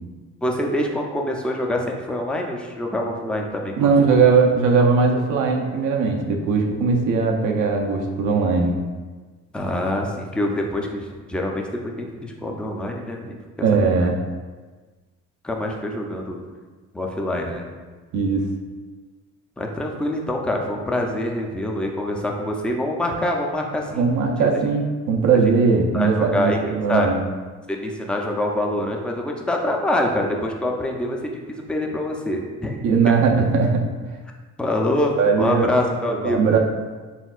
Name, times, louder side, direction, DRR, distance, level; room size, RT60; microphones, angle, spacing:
voice 1, 0.4-3.9 9.5-13.4 15.4-16.4 16.9-17.7 19.6-24.0 24.4-24.5 25.9-27.1 27.7-33.1 34.6-36.4, left 1 dB, 5° left, 1 dB, 0.4 m, -25 dB
voice 2, 3.8-8.8 13.6-14.2 18.1-18.5 23.9-27.2 32.8-33.9 35.2-35.8 36.0-36.6, right 5 dB, 85° right, 1 dB, 0.6 m, -19 dB
4.4 x 3.5 x 2.4 m, 1.4 s
cardioid pair, 90°, 30 cm